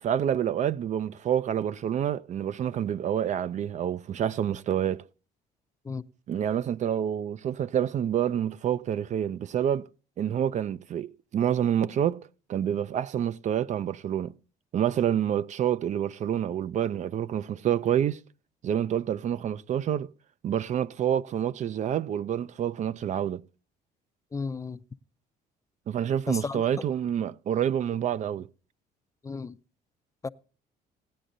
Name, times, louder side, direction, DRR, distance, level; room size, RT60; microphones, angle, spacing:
voice 1, 0.0-5.0 6.3-9.9 10.2-14.3 14.7-18.2 18.6-20.1 20.4-23.4 25.9-28.5, right 9 dB, 45° right, 0.4 m, -28 dB
voice 2, 24.3-24.8 26.3-26.6 29.2-29.6 30.2-30.3, left 4 dB, 20° left, 0.4 m, -33 dB
18.0 x 9.9 x 2.6 m
cardioid pair, 110°, 17 cm